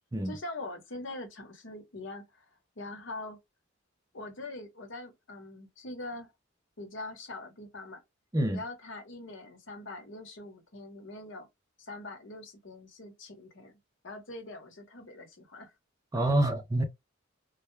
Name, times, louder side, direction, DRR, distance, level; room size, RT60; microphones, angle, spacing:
voice 1, 0.2-2.5 2.8-3.4 4.1-6.3 6.8-8.0 8.5-11.5 11.8-13.7 14.0-15.7, left 2 dB, 65° left, 0.9 m, -43 dB
voice 2, 16.1-16.8, right 1 dB, 15° right, 0.4 m, -27 dB
2.2 x 2.0 x 3.0 m
head